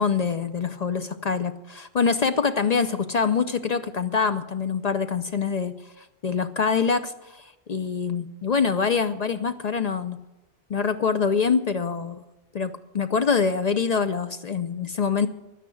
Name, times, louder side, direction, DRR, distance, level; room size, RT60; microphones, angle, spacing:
voice 1, 0.0-10.2 10.7-12.2 12.5-15.3, left 5 dB, 50° left, 10 dB, 0.5 m, -25 dB
12.0 x 10.0 x 7.7 m, 0.96 s
omnidirectional pair, 1.2 m